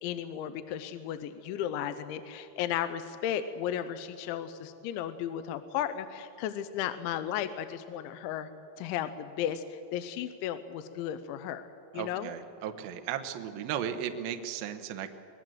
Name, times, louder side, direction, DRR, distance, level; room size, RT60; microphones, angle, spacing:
voice 1, 0.0-8.5 8.8-11.7 11.9-12.3, left 10 dB, 85° left, 10 dB, 3.0 m, -34 dB
voice 2, 11.9-15.1, right 9 dB, 75° right, 7 dB, 2.1 m, -35 dB
23.5 x 20.0 x 7.7 m, 2.7 s
omnidirectional pair, 5.5 m